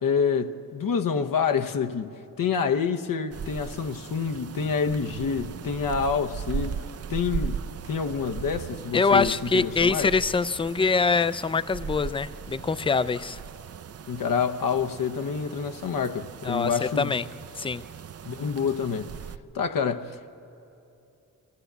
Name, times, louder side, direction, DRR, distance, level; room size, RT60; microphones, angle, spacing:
voice 1, 0.0-2.1 2.4-6.8 7.1-7.6 7.9-10.1 14.1-17.1 18.2-19.1 19.5-20.3, left 6 dB, 75° left, 0.9 m, -27 dB
sound 1, 3.3-19.4, right 7 dB, 45° right, 0.5 m, -38 dB
voice 2, 8.9-13.4 16.4-17.2 17.6-17.8, left 4 dB, 15° left, 0.4 m, -24 dB
24.0 x 15.0 x 8.1 m
cardioid pair, 85°, 33 cm